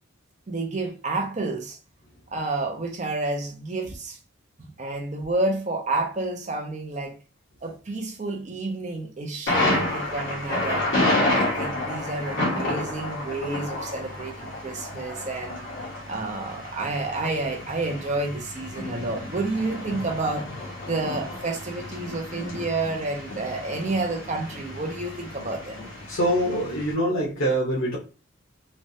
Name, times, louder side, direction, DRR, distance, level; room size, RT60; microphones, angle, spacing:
voice 1, 0.5-1.8 2.3-4.2 4.6-7.2 7.6-15.6 16.1-25.8, right 2 dB, 35° right, 0.5 m, -30 dB
Thunder, 9.5-26.9, left 1 dB, 60° left, 1.1 m, -30 dB
voice 2, 26.1-28.0, equal, 80° left, 0.8 m, -24 dB
3.1 x 2.3 x 2.6 m
head